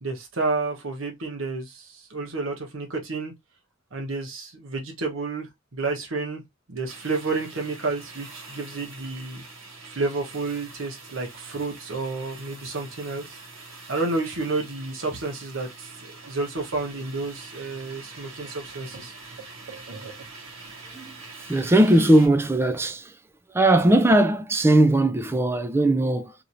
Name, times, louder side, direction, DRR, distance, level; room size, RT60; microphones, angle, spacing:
voice 1, 0.0-3.3 3.9-6.4 6.7-9.4 9.9-13.3 13.9-15.9 16.3-19.1 19.7-20.1, right 3 dB, 65° right, 1.1 m, -30 dB
sound 1, 6.9-22.3, right 3 dB, 80° right, 1.7 m, -44 dB
voice 2, 21.5-23.1 23.5-26.3, right 1 dB, 10° right, 0.3 m, -19 dB
3.0 x 2.7 x 2.6 m
head